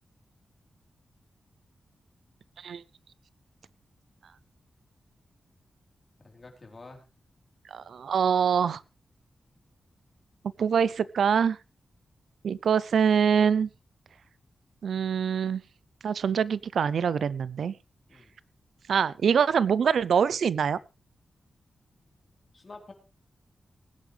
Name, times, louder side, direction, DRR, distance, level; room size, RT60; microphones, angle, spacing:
voice 1, 6.2-7.0 18.1-18.3 22.5-22.9, left 3 dB, 35° left, 3 dB, 4.0 m, -48 dB
voice 2, 7.7-8.8 10.6-11.6 12.4-13.7 14.8-15.6 16.0-17.8 18.9-20.8, right 7 dB, 85° right, 19 dB, 0.6 m, -24 dB
20.0 x 10.5 x 3.4 m, 0.30 s
wide cardioid pair, 110°, 0 cm